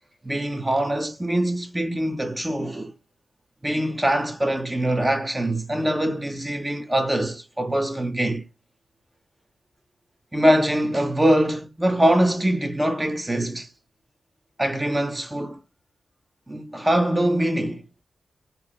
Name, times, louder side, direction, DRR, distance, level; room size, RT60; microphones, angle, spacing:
voice 1, 0.2-2.9 3.6-8.4 10.3-13.7 14.6-15.6 16.5-17.8, right 1 dB, 20° right, 0.9 m, -23 dB
4.1 x 2.1 x 4.1 m
cardioid pair, 50°, 0 cm